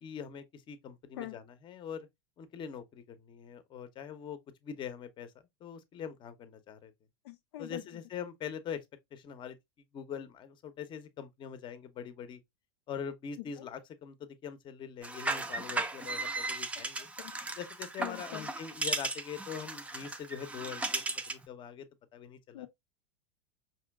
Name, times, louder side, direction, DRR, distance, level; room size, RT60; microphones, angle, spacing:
voice 1, 0.0-2.1 2.4-5.3 5.6-6.9 7.6-8.8 9.1-9.6 9.9-12.4 12.9-17.1 17.6-21.9 22.1-22.7, left 7 dB, 35° left, 0.7 m, -43 dB
voice 2, 7.2-7.8 13.4-13.7 16.7-17.4 18.0-18.5 22.5-22.7, left 14 dB, 65° left, 0.4 m, -44 dB
sound 1, 15.0-21.4, right 2 dB, 10° right, 0.5 m, -36 dB
5.0 x 2.8 x 2.2 m
hypercardioid pair, 90°, 15 cm